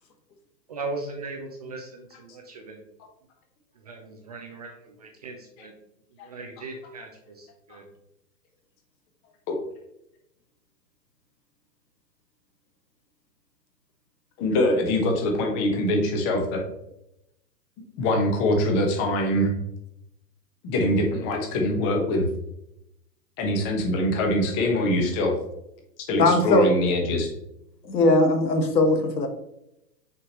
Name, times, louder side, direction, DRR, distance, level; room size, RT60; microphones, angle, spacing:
voice 1, 0.7-2.8 3.8-5.7 6.1-7.9, right 3 dB, 25° right, 2 dB, 0.5 m, -38 dB
voice 2, 14.4-16.6 18.0-19.5 20.6-22.2 23.4-25.3 26.1-27.3, left 1 dB, 25° left, 2 dB, 1.3 m, -23 dB
voice 3, 26.2-26.7 27.8-29.3, left 2 dB, 80° left, 7 dB, 1.4 m, -19 dB
6.0 x 5.1 x 3.1 m, 0.83 s
hypercardioid pair, 135°, 50 cm